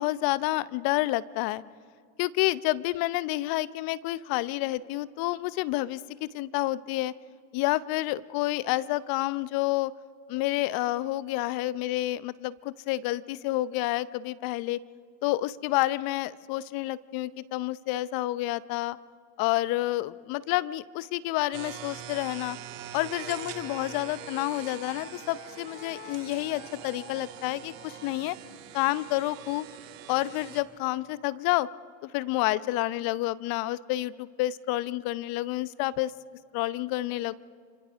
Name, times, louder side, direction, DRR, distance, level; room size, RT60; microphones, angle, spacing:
voice 1, 0.0-1.6 2.2-7.1 7.5-9.9 10.3-14.8 15.2-19.0 19.4-22.6 22.9-28.4 28.7-29.7 30.1-31.7 32.0-36.1 36.5-37.3, left 17 dB, 60° left, 18 dB, 0.7 m, -29 dB
sound 1, 21.5-30.6, right 11 dB, 70° right, 1.8 m, -44 dB
sound 2, 22.8-28.2, left 5 dB, 25° left, 1.8 m, -48 dB
28.5 x 25.5 x 3.6 m, 2.2 s
hypercardioid pair, 65°, 40 cm